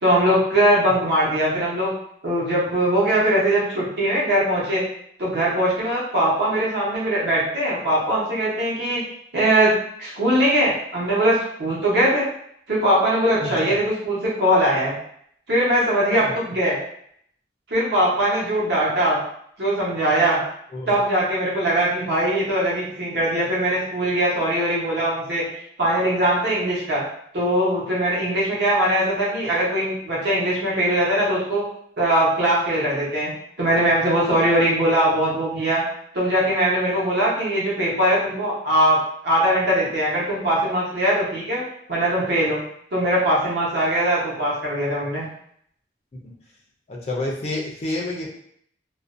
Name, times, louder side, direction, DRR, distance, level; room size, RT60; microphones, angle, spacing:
voice 1, 0.0-1.9 2.2-4.8 5.2-9.0 9.3-12.3 12.7-15.0 15.5-16.8 17.7-19.2 19.6-20.4 20.9-25.5 25.8-27.0 27.3-31.7 32.0-33.3 33.6-35.8 36.1-41.6 41.9-42.6 42.9-45.3, right 1 dB, 65° right, -6 dB, 0.9 m, -21 dB
voice 2, 13.4-13.8 16.2-16.3 20.7-21.0 46.9-48.3, left 2 dB, 35° left, -1 dB, 0.3 m, -29 dB
2.4 x 2.1 x 2.4 m, 0.68 s
head